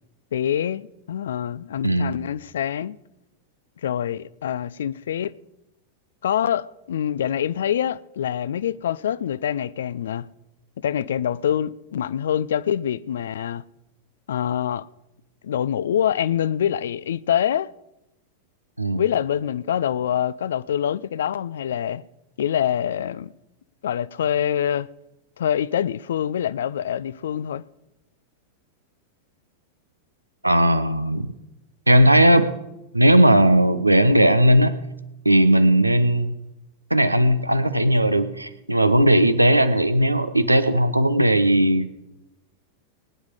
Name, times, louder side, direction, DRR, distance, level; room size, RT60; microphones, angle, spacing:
voice 1, 0.3-3.0 3.8-5.3 6.2-10.3 10.8-13.6 14.3-14.9 15.4-17.7 18.9-22.0 22.4-23.3 23.8-24.9 25.4-27.6, left 9 dB, 60° left, 0.5 m, -25 dB
voice 2, 30.4-31.3 31.9-32.5 32.9-34.8 35.2-36.3 36.9-41.9, right 1 dB, 85° right, 0.9 m, -17 dB
20.0 x 9.7 x 4.9 m
figure-of-eight pair, 90°, 0 cm